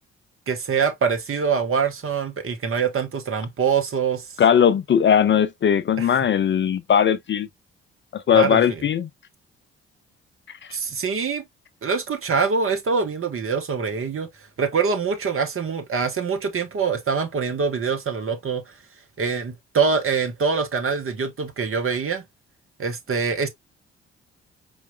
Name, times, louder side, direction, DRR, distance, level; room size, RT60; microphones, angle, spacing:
voice 1, 0.5-4.3 6.0-6.2 8.3-8.8 10.7-11.5 11.8-14.3 14.6-18.6 19.2-22.2 22.8-23.5, right 5 dB, 45° right, 1.3 m, -24 dB
voice 2, 4.4-7.5 8.1-9.1, left 8 dB, 35° left, 0.5 m, -19 dB
4.7 x 3.7 x 2.3 m
figure-of-eight pair, 40°, 31 cm